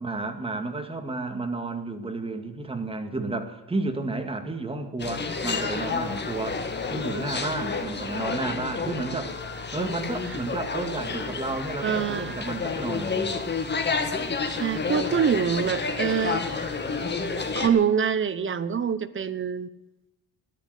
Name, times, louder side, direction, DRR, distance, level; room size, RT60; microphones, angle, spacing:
voice 1, 0.0-6.6 6.9-9.4 9.7-13.5, right 2 dB, 15° right, 6 dB, 2.1 m, -32 dB
sound 1, 5.0-17.7, left 4 dB, 30° left, 1.9 m, -30 dB
voice 2, 11.8-12.5 14.5-16.7 17.5-19.7, right 7 dB, 35° right, 14 dB, 1.0 m, -25 dB
13.5 x 10.5 x 8.1 m, 0.98 s
cardioid pair, 135°, 37 cm